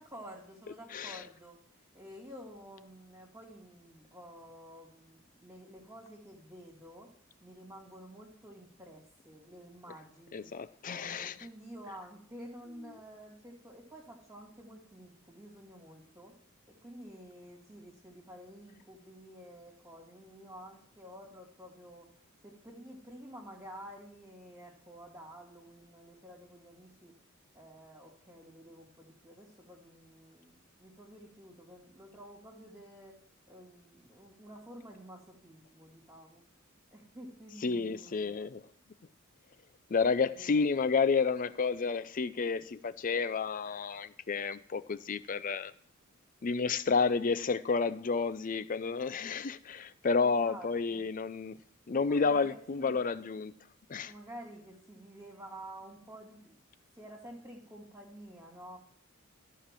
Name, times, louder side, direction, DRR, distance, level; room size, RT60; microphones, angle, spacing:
voice 1, 0.0-1.6 1.9-7.1 7.4-10.5 10.8-16.3 16.8-22.1 22.4-27.1 27.5-33.1 33.5-36.4 36.9-38.5 40.2-40.9 50.2-51.1 51.9-53.1 54.0-56.6 56.9-58.8, equal, 15° right, 2.4 m, -50 dB
voice 2, 0.9-1.2 10.3-11.3 37.6-38.6 39.9-45.7 46.4-51.6 51.9-53.5 53.9-54.1, left 5 dB, 40° left, 0.5 m, -30 dB
14.0 x 5.0 x 7.6 m
head